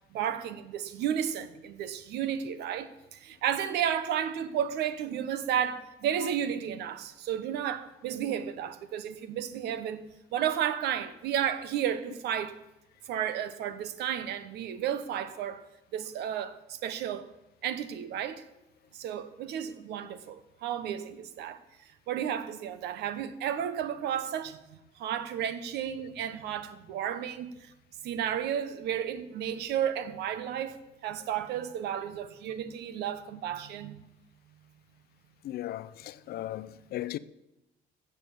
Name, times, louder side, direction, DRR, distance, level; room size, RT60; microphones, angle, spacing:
voice 1, 0.1-10.0 10.3-12.5 13.1-15.6 15.9-17.3 17.6-18.4 18.9-21.6 22.1-27.7 28.0-34.0, right 9 dB, 80° right, 1.1 m, -32 dB
voice 2, 35.4-37.2, left 14 dB, 65° left, 0.6 m, -37 dB
14.5 x 7.1 x 8.5 m
cardioid pair, 110°, 17 cm